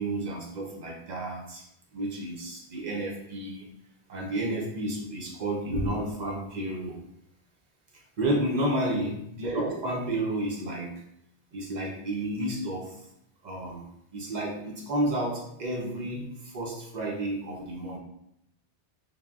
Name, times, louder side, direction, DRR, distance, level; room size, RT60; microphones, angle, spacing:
voice 1, 0.0-1.6 1.9-3.7 4.1-7.0 8.2-10.9 11.5-13.1 13.4-13.9 14.1-18.0, right 1 dB, 55° right, -2 dB, 0.5 m, -31 dB
3.3 x 2.1 x 2.3 m, 0.77 s
omnidirectional pair, 1.1 m